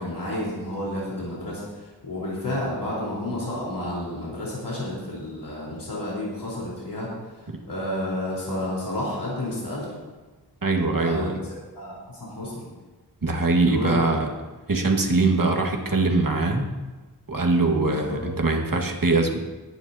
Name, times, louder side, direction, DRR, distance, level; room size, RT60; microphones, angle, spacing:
voice 1, 0.0-7.1 7.7-9.9 10.8-11.3 11.8-12.6 13.6-14.1 15.0-15.2 17.8-18.2, left 1 dB, 85° left, -6 dB, 4.0 m, -31 dB
voice 2, 10.6-11.3 13.2-14.3 14.7-16.7 17.3-19.4, right 3 dB, 55° right, 1 dB, 1.8 m, -22 dB
20.5 x 10.5 x 2.8 m, 1.3 s
wide cardioid pair, 85°, 40 cm